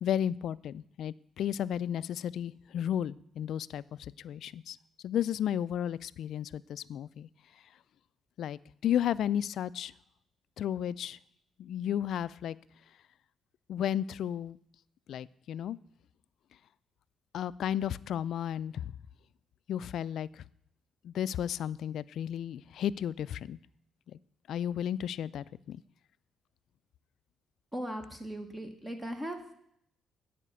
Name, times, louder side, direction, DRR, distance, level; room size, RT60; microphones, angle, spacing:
voice 1, 0.0-3.8 4.2-4.8 5.0-7.3 8.4-9.9 10.6-11.2 11.6-12.6 13.7-14.6 15.1-15.8 17.3-18.9 19.7-20.4 21.0-23.6 24.5-25.8, left 10 dB, 70° left, 19 dB, 0.3 m, -33 dB
voice 2, 27.7-29.4, equal, 10° right, 6 dB, 1.2 m, -38 dB
9.9 x 5.0 x 8.1 m, 0.70 s
cardioid pair, 90°, 0 cm